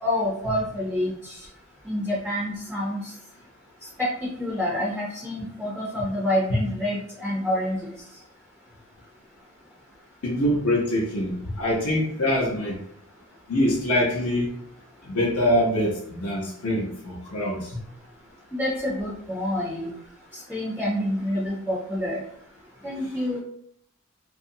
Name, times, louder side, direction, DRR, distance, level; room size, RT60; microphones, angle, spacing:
voice 1, 0.0-1.4 1.8-3.1 4.0-4.1 4.4-7.9 18.5-19.9 20.3-22.2 22.8-23.4, left 1 dB, ahead, -5 dB, 0.4 m, -27 dB
voice 2, 10.2-12.8 13.5-14.5 15.0-17.8, left 1 dB, 75° left, -5 dB, 0.7 m, -24 dB
2.7 x 2.4 x 2.6 m, 0.69 s
head